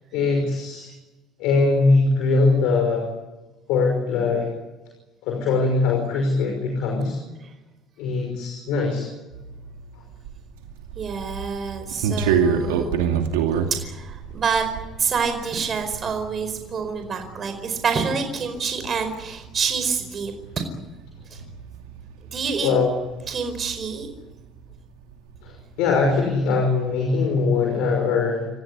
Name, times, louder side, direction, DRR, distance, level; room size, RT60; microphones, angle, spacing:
voice 1, 0.1-0.9 1.4-3.1 3.7-4.5 5.2-7.2 8.0-9.1 22.6-22.9 25.4-28.5, left 4 dB, 75° left, 2 dB, 5.7 m, -21 dB
sound 1, 9.3-24.9 25.1-26.4, right 7 dB, 85° right, 2.6 m, -29 dB
voice 2, 10.9-13.0 13.7-14.7 15.0-20.3 21.3-21.4 22.3-22.7 23.3-24.1, right 5 dB, 45° right, 7 dB, 4.8 m, -27 dB
29.5 x 15.5 x 9.7 m, 1.1 s
hypercardioid pair, 70°, 0 cm